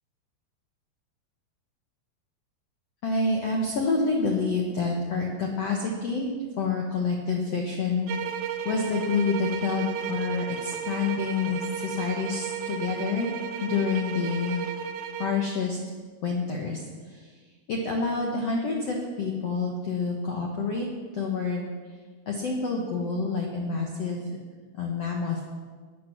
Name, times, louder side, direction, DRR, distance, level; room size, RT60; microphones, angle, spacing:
voice 1, 3.0-8.1 8.6-13.3 13.6-14.6 15.2-15.8 16.2-17.3 17.7-20.9 21.1-21.7 22.3-24.3 24.7-25.4, left 4 dB, 85° left, 0 dB, 1.4 m, -28 dB
sound 1, 8.1-15.4, right 7 dB, 90° right, 2.8 m, -34 dB
13.5 x 9.0 x 5.9 m, 1.5 s
omnidirectional pair, 4.8 m